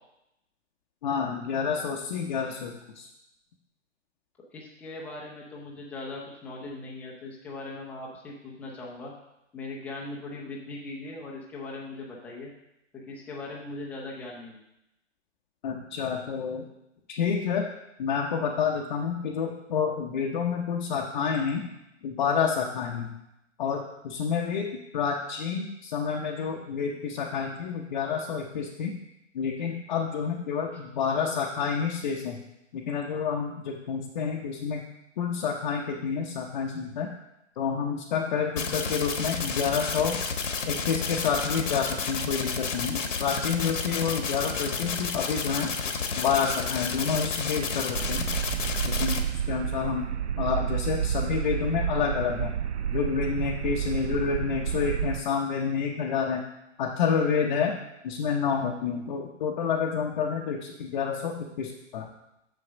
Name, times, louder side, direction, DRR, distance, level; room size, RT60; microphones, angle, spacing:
voice 1, 1.0-3.1 15.6-16.7 17.1-17.7 18.0-21.6 22.0-23.1 23.6-24.7 24.9-28.9 29.3-32.4 32.7-34.8 35.2-37.1 37.6-40.1 40.7-45.7 46.2-48.3 48.9-49.2 49.5-50.1 50.4-52.5 52.9-56.4 56.8-57.7 58.0-62.1, left 6 dB, 35° left, -2 dB, 0.8 m, -29 dB
voice 2, 4.5-9.1 9.5-12.5 12.9-14.6, left 2 dB, 5° left, -3 dB, 0.6 m, -39 dB
sound 1, 38.6-49.2, left 5 dB, 75° left, 1.3 m, -31 dB
sound 2, 47.9-55.2, right 9 dB, 60° right, 0.5 m, -30 dB
6.8 x 6.7 x 5.0 m, 0.87 s
hypercardioid pair, 145°, 38 cm